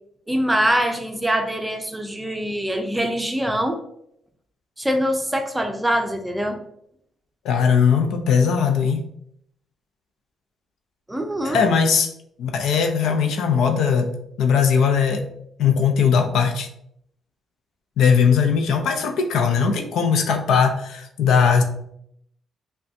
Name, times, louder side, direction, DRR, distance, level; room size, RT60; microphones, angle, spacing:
voice 1, 0.3-3.8 4.8-6.6 11.1-11.6, equal, 10° right, 5 dB, 0.5 m, -23 dB
voice 2, 7.4-9.1 11.4-12.1 12.4-14.1 14.4-15.3 15.6-16.7 18.0-21.6, left 6 dB, 80° left, 5 dB, 0.6 m, -19 dB
5.4 x 2.3 x 2.6 m, 0.72 s
cardioid pair, 90°, 0 cm